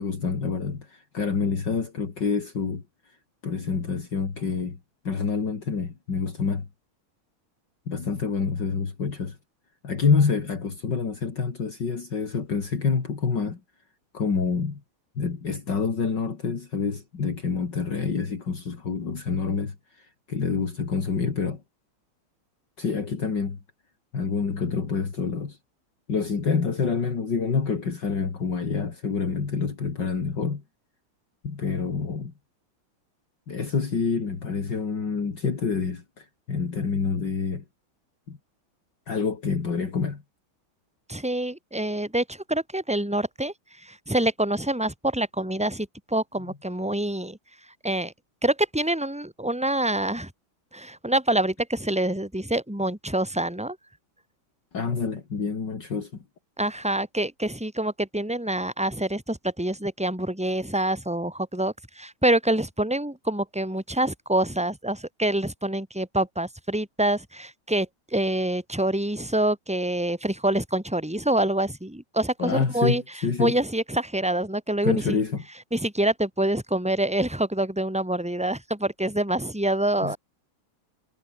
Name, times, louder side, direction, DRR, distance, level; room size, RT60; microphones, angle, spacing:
voice 1, 0.0-3.2 3.4-4.8 5.1-6.7 7.9-9.4 9.8-13.6 14.1-14.8 15.2-21.6 22.8-23.6 24.1-25.6 26.1-30.6 31.4-32.3 33.5-37.6 38.3-38.4 39.1-40.2 54.7-56.1 72.4-73.6 74.8-75.5 80.0-80.2, left 5 dB, 55° left, 3.4 m, -27 dB
voice 2, 41.1-47.4 47.8-48.1 48.4-50.3 50.7-53.8 56.6-73.0 73.4-75.2 75.7-80.2, right 1 dB, 5° right, 5.1 m, -26 dB
omnidirectional pair, 2.3 m